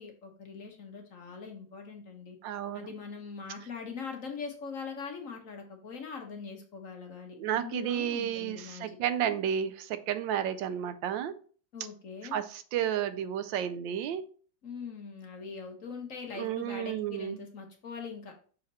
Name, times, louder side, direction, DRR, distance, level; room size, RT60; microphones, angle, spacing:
voice 1, 0.0-2.4 2.7-9.0 11.7-12.4 14.6-18.3, left 5 dB, 50° left, 2 dB, 1.3 m, -42 dB
voice 2, 2.4-2.9 7.4-11.3 12.3-14.2 16.4-17.4, right 9 dB, 85° right, 12 dB, 1.3 m, -32 dB
6.4 x 4.2 x 4.1 m, 0.42 s
omnidirectional pair, 2.0 m